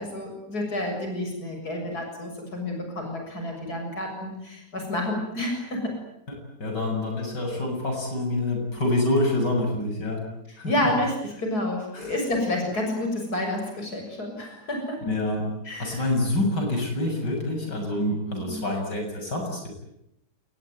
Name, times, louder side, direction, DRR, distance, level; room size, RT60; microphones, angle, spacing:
voice 1, 0.0-5.9 10.7-15.0 15.7-16.0 18.4-18.5, left 1 dB, 60° left, 2 dB, 7.7 m, -29 dB
voice 2, 6.3-10.2 10.6-10.9 11.9-12.1 15.0-15.5 15.8-19.7, left 1 dB, 80° left, 2 dB, 7.9 m, -27 dB
28.0 x 21.0 x 9.3 m, 0.81 s
omnidirectional pair, 1.8 m